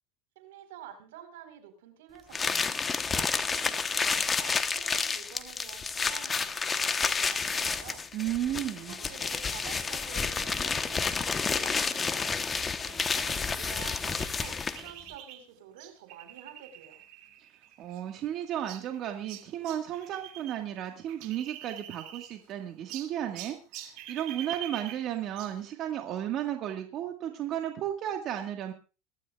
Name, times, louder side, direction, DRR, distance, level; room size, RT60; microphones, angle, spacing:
voice 1, 0.4-2.7 3.1-8.0 8.8-12.6 12.8-17.0, right 9 dB, 85° right, 7 dB, 4.2 m, -49 dB
sound 1, 2.3-14.9, left 5 dB, 20° left, 1.1 m, -30 dB
voice 2, 8.1-9.0 17.8-28.7, right 11 dB, 45° right, 4 dB, 1.7 m, -34 dB
sound 2, 13.8-20.6 20.9-22.5 22.9-25.6, right 12 dB, 65° right, 2.5 m, -45 dB
22.5 x 12.5 x 2.4 m, 0.33 s
supercardioid pair, 120°, 0 cm